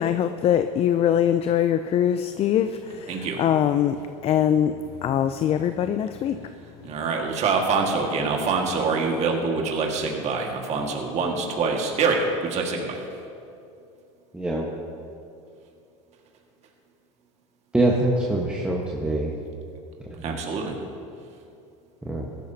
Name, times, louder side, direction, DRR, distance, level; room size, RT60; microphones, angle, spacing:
voice 1, 0.0-4.7 5.0-6.4, left 9 dB, 40° left, 10 dB, 0.5 m, -23 dB
voice 2, 3.1-3.4 6.8-13.0 20.2-20.8, right 4 dB, 45° right, 1 dB, 1.8 m, -25 dB
voice 3, 14.3-14.7 17.7-19.3 20.0-20.4 22.0-22.3, right 1 dB, 5° right, -3 dB, 1.3 m, -24 dB
16.0 x 12.5 x 2.8 m, 2.5 s
supercardioid pair, 100°, 16 cm